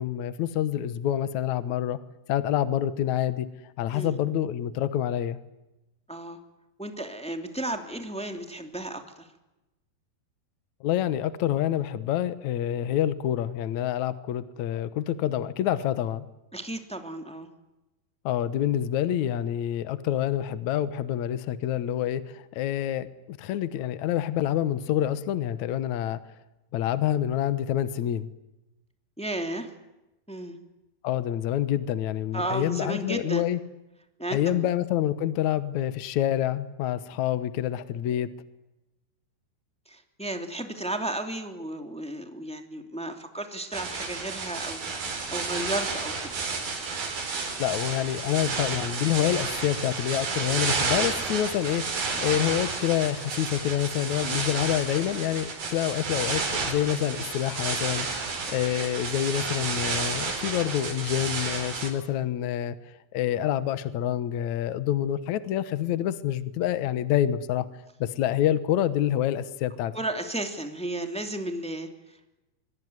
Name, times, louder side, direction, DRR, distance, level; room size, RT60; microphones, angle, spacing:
voice 1, 0.0-2.0 2.3-3.5 3.8-5.4 10.8-16.3 18.3-26.2 26.7-28.3 31.0-33.6 34.3-38.3 47.6-62.8 63.1-67.7 68.0-69.9, left 11 dB, 70° left, 14 dB, 1.8 m, -27 dB
voice 2, 6.1-6.4 6.8-9.3 16.5-17.5 29.2-29.7 30.3-30.6 32.3-33.5 34.2-34.7 39.9-44.8 45.3-46.4 69.9-72.4, right 1 dB, ahead, 5 dB, 1.9 m, -34 dB
sound 1, 43.7-61.9, right 4 dB, 60° right, 6.3 m, -31 dB
25.5 x 23.5 x 9.5 m, 0.98 s
omnidirectional pair, 4.9 m